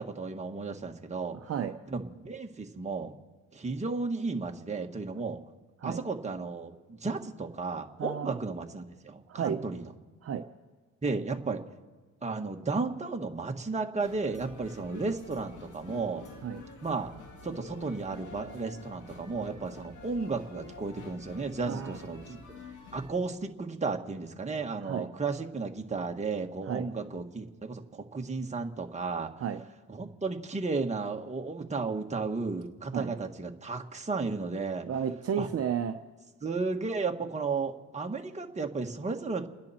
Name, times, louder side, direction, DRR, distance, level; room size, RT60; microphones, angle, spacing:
voice 1, 0.0-1.4 1.9-3.1 3.5-5.4 5.8-9.9 11.0-11.6 12.2-16.2 16.8-17.1 17.4-22.4 22.9-29.3 29.9-34.9 35.4-35.5 36.4-39.5, right 4 dB, 25° right, 2 dB, 1.7 m, -34 dB
voice 2, 1.4-1.7 5.8-6.0 8.0-8.4 9.3-9.6 10.2-10.4 16.4-16.6 21.6-22.0 24.8-25.1 26.7-26.9 29.4-29.6 32.9-33.1 34.8-36.0, right 8 dB, 50° right, 6 dB, 0.9 m, -32 dB
sound 1, 14.0-23.1, left 4 dB, 75° left, 2.6 m, -48 dB
30.0 x 10.5 x 4.4 m, 1.4 s
cardioid pair, 90°, 30 cm